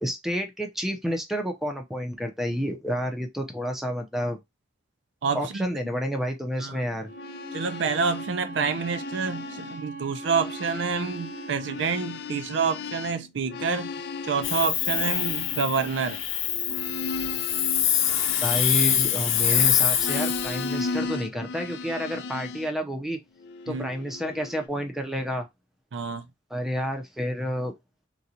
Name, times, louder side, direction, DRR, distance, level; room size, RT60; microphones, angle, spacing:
voice 1, 0.0-4.4 5.3-7.1 18.4-23.2 23.7-25.5 26.5-27.7, equal, ahead, 0.6 m, -30 dB
voice 2, 5.2-5.7 6.6-6.8 7.5-13.9 14.2-16.2 23.7-23.9 25.9-26.3, right 5 dB, 65° right, 0.4 m, -28 dB
sound 1, 7.0-9.8 10.1-19.6 20.0-22.7 23.4-24.7, left 4 dB, 55° left, 0.4 m, -36 dB
Bowed string instrument, 7.0-11.9, right 3 dB, 45° right, 0.8 m, -40 dB
Hiss, 14.4-20.7, left 10 dB, 85° left, 0.7 m, -25 dB
3.8 x 2.3 x 2.7 m
head